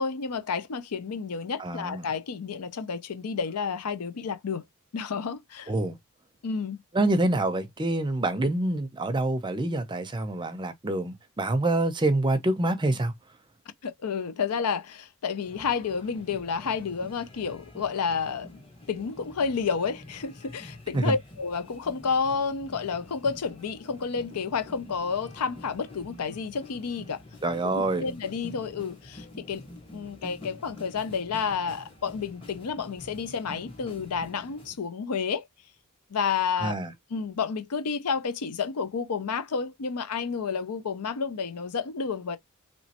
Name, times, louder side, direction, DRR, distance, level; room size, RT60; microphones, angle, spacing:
voice 1, 0.0-4.6 4.9-5.7 6.4-6.8 13.8-18.6 18.9-27.2 27.7-29.7 29.9-35.5 36.1-36.7 37.1-42.4, left 5 dB, 85° left, 0.6 m, -30 dB
voice 2, 1.6-2.1 5.7-6.0 6.9-13.1 20.9-21.1 27.4-28.1 36.6-36.9, right 2 dB, 20° right, 0.5 m, -26 dB
sound 1, 15.4-34.8, left 1 dB, 25° left, 1.2 m, -47 dB
3.1 x 3.0 x 2.8 m
head